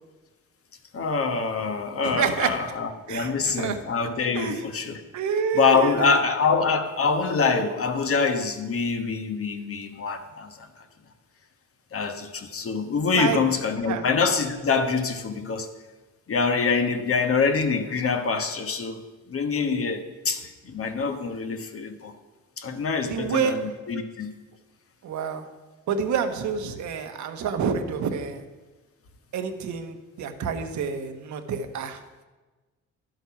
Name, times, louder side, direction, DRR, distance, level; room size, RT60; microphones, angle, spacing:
voice 1, 0.9-5.0 5.5-10.8 11.9-15.7 16.3-19.0 19.3-22.1 22.6-24.3, left 5 dB, 50° left, 7 dB, 1.2 m, -25 dB
voice 2, 2.0-2.5 3.1-3.8 4.3-4.6 5.1-6.2 13.1-13.4 13.9-14.0 23.1-23.6 25.0-25.4 25.9-28.4 29.3-32.0, right 6 dB, 70° right, 6 dB, 1.2 m, -28 dB
11.5 x 7.9 x 5.9 m, 1.2 s
cardioid pair, 90°, 30 cm